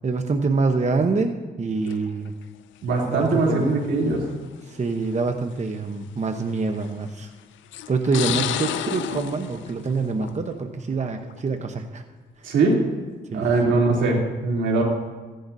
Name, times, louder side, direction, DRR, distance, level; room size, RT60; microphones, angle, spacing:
voice 1, 0.0-2.3 3.0-3.7 4.6-7.3 7.9-12.0 12.4-12.5 13.3-13.8, right 4 dB, 40° right, 5 dB, 0.9 m, -26 dB
sound 1, 1.8-2.3 3.3-3.4 4.5-4.6 5.1-5.2 6.6-7.0 7.7-10.6 11.0-11.4, left 11 dB, 90° left, 0.5 m, -31 dB
voice 2, 2.8-4.3 12.4-12.8 13.3-14.8, right 3 dB, 85° right, -2 dB, 3.2 m, -21 dB
16.0 x 11.5 x 2.7 m, 1.4 s
cardioid pair, 65°, 19 cm